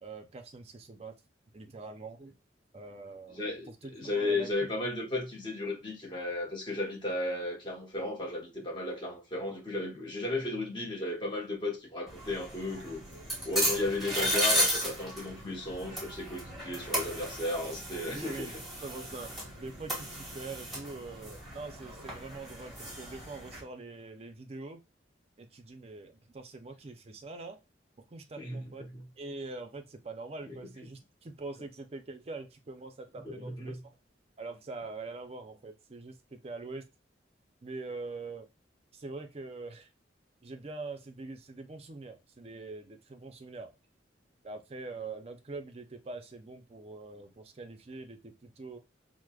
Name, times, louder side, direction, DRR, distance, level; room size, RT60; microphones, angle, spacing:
voice 1, 0.0-1.2 1.5-2.4 2.7-4.9 18.1-18.5 18.8-24.8 25.4-27.6 28.1-28.9 29.2-33.8 34.4-36.9 37.6-38.5 38.9-39.9 40.4-43.8 44.4-48.8, right 3 dB, 35° right, 0.5 m, -44 dB
voice 2, 3.4-3.7 4.0-13.0 13.4-18.5 28.4-29.1 30.5-30.6 33.2-33.8, left 2 dB, 25° left, 1.0 m, -34 dB
sound 1, 12.1-23.6, equal, ahead, 1.1 m, -35 dB
4.7 x 2.1 x 2.3 m
head